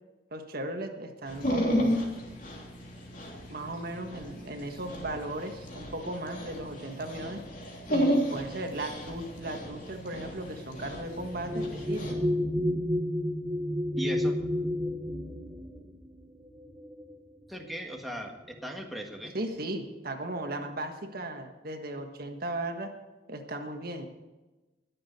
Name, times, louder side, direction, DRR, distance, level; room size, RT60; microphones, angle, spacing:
voice 1, 0.3-1.9 3.5-7.4 7.9-12.3 19.3-22.9 23.3-24.1, right 1 dB, 55° right, 4 dB, 1.5 m, -36 dB
Dog, 1.3-12.1, equal, 45° left, 3.0 m, -33 dB
sound 1, 8.7-17.7 18.6-18.7 19.1-19.6, left 1 dB, 15° right, 1.1 m, -32 dB
voice 2, 14.0-14.3 17.5-19.3, equal, ahead, 0 dB, 1.6 m, -37 dB
21.5 x 7.6 x 4.3 m, 1.1 s
head